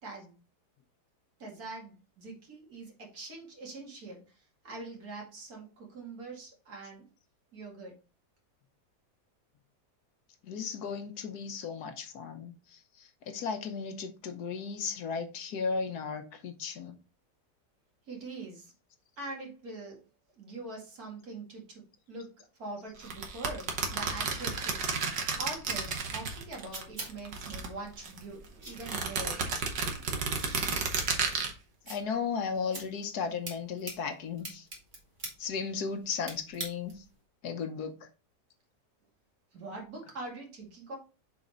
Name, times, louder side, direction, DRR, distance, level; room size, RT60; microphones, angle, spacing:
voice 1, 0.0-0.4 1.4-7.1 7.5-8.0 18.1-18.7 19.2-20.1 20.3-21.8 22.1-22.3 22.6-24.8 25.4-29.4 39.5-41.0, right 2 dB, 60° right, 2.6 m, -43 dB
voice 2, 10.5-17.0 31.9-34.7 35.4-37.0 37.4-38.1, left 5 dB, 70° left, 1.3 m, -35 dB
sound 1, 23.0-26.8 27.1-28.2 28.7-31.5, right 5 dB, 90° right, 1.8 m, -32 dB
sound 2, 26.3-37.2, right 1 dB, 30° right, 2.0 m, -47 dB
7.0 x 4.1 x 4.0 m
omnidirectional pair, 1.8 m